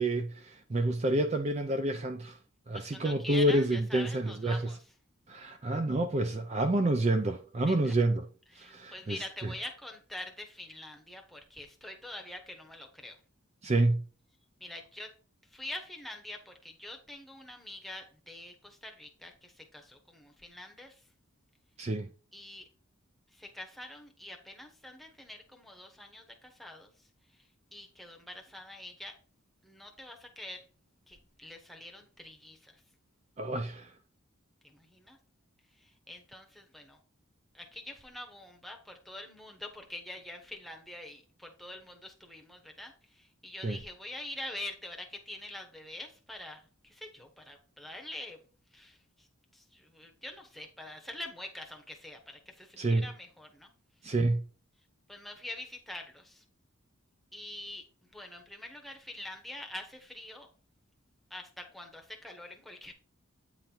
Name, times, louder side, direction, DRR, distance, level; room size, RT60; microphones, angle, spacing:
voice 1, 0.0-2.4 2.7-4.7 5.3-8.3 8.6-9.5 13.6-14.0 21.8-22.1 33.4-33.9 43.6-43.8 52.8-53.1 54.0-54.4, right 1 dB, 30° right, 0.4 m, -28 dB
voice 2, 2.7-4.8 7.7-7.9 8.5-13.2 14.6-15.1 15.5-21.0 22.3-22.7 23.3-27.1 27.3-29.2 29.6-30.6 31.1-32.8 34.6-35.2 35.7-37.0 37.5-48.4 48.7-49.3 49.5-53.7 54.0-54.1 55.1-56.4 57.3-57.8 58.1-60.5 61.3-62.9, left 1 dB, ahead, 0.9 m, -45 dB
8.8 x 3.9 x 4.4 m
head